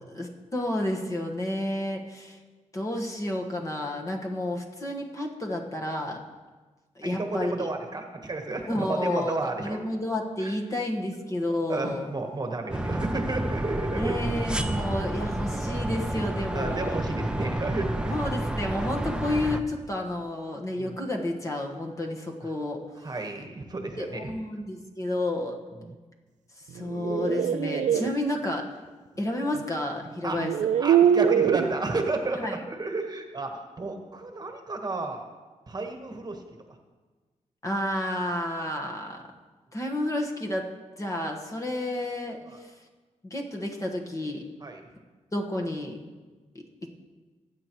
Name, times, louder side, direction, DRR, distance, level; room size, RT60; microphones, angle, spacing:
voice 1, 0.1-2.4 2.7-6.2 6.9-7.7 8.7-12.1 13.9-17.0 18.1-22.8 24.0-25.6 26.7-28.7 29.2-30.5 32.3-32.6 37.6-39.2 39.7-40.7 41.0-42.7 43.2-44.4 45.3-46.0 46.5-46.9, left 1 dB, 25° left, 1 dB, 1.4 m, -31 dB
voice 2, 7.0-9.8 10.4-10.5 11.7-14.2 14.6-14.8 16.5-18.3 20.8-21.0 23.0-24.3 25.8-25.9 30.2-30.4 30.8-35.3 35.7-36.4 42.5-42.6 44.6-44.9, right 3 dB, 35° right, 4 dB, 1.3 m, -32 dB
sound 1, 12.7-19.6, right 1 dB, 5° right, 0.7 m, -30 dB
sound 2, 26.8-28.1 29.6-29.7 30.3-31.7, right 9 dB, 80° right, 0.4 m, -23 dB
19.5 x 8.2 x 3.1 m, 1.3 s
cardioid pair, 90°, 12 cm